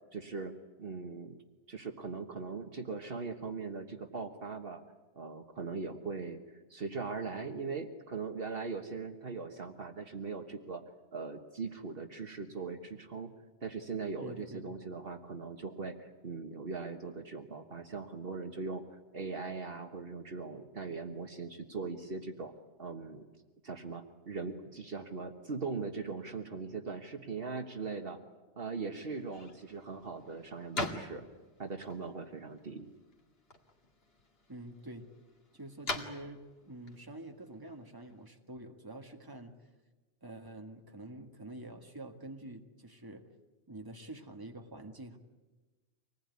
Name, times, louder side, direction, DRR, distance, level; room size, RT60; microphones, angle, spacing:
voice 1, 0.1-1.4 1.7-4.8 5.1-10.8 11.1-13.3 13.6-22.5 22.8-23.3 23.6-28.2 28.6-31.3 31.6-32.9, right 4 dB, 60° right, 5 dB, 1.5 m, -40 dB
voice 2, 14.2-14.8 34.5-35.1 35.5-39.6 40.2-43.2 43.7-45.2, right 1 dB, 20° right, 3 dB, 1.9 m, -47 dB
sound 1, 29.1-38.3, left 2 dB, 60° left, 2.5 m, -44 dB
25.0 x 19.5 x 9.7 m, 1.2 s
omnidirectional pair, 1.1 m